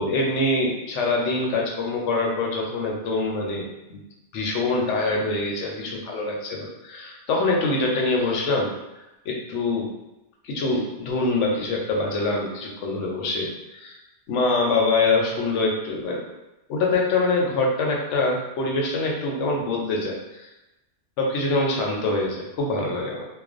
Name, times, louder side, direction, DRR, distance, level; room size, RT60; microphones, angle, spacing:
voice 1, 0.0-4.0 4.3-8.7 9.3-9.9 10.4-14.0 14.3-16.2 16.7-20.5 21.2-23.3, left 2 dB, 85° left, -1 dB, 0.9 m, -24 dB
2.4 x 2.1 x 2.4 m, 0.99 s
omnidirectional pair, 1.2 m